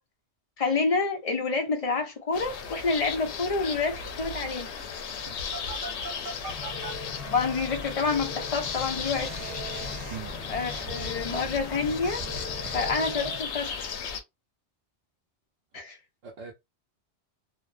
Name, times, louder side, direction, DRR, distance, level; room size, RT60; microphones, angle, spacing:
voice 1, 0.6-4.7 7.2-9.3 10.5-12.2 12.7-13.7 15.7-16.0, left 4 dB, 45° left, 0.5 m, -28 dB
sound 1, 2.3-14.2, left 6 dB, 85° left, 0.9 m, -36 dB
voice 2, 4.1-4.3 6.4-6.6 10.1-10.4 12.6-12.8 16.2-16.5, right 7 dB, 85° right, 0.9 m, -42 dB
Telephone, 5.5-6.9 8.6-13.0, right 2 dB, 55° right, 0.7 m, -41 dB
sound 2, 6.5-13.4, left 2 dB, 15° right, 1.0 m, -41 dB
2.6 x 2.1 x 2.4 m
omnidirectional pair, 1.1 m